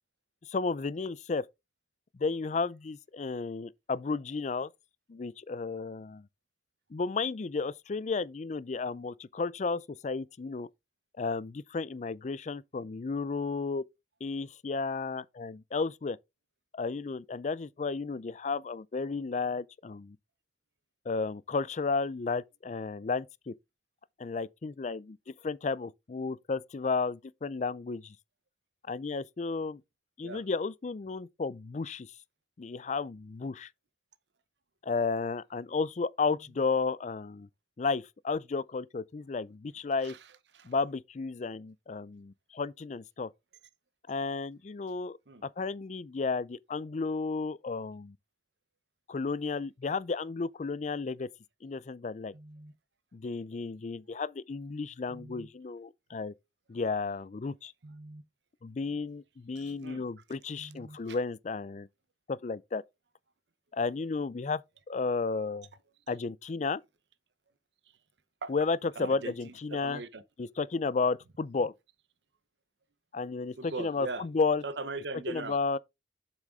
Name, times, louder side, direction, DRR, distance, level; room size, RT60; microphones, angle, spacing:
voice 1, 0.5-1.5 2.1-4.7 5.1-6.3 6.9-10.7 11.2-13.8 14.2-16.2 16.8-20.2 21.1-23.5 24.2-28.2 28.9-29.8 30.2-32.1 32.6-33.7 34.8-37.5 37.8-40.1 40.6-43.3 44.1-45.2 45.4-48.2 49.1-51.3 51.6-52.3 53.1-56.3 56.7-57.7 58.6-61.9 62.3-62.8 63.7-64.6 64.9-65.7 66.1-66.8 68.5-70.0 70.4-71.7 73.1-74.6 75.3-75.8, left 4 dB, 40° left, 0.4 m, -33 dB
voice 2, 52.3-52.7 55.1-55.5 57.8-58.2 59.6-60.0 60.6-61.2 68.4-68.5 69.0-70.2 73.6-74.2 74.6-75.6, right 3 dB, 75° right, 0.8 m, -41 dB
7.5 x 6.2 x 3.6 m
head